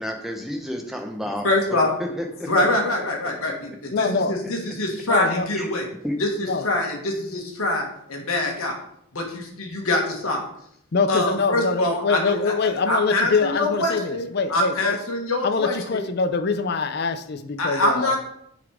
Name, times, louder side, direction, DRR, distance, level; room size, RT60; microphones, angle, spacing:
voice 1, 0.0-1.5 2.0-2.6 3.4-3.5 5.5-5.7 6.0-6.2, equal, ahead, 2 dB, 0.8 m, -30 dB
voice 2, 1.4-1.9 2.5-3.7 4.0-5.8 6.2-8.8 9.1-10.4 11.1-12.4 12.6-14.2 14.5-16.0 17.6-18.2, left 2 dB, 75° left, 1 dB, 1.4 m, -24 dB
voice 3, 3.9-4.7 5.0-5.5 6.4-6.7 10.9-15.0 15.4-18.2, left 4 dB, 45° left, 11 dB, 0.5 m, -24 dB
7.5 x 4.1 x 4.8 m, 0.71 s
head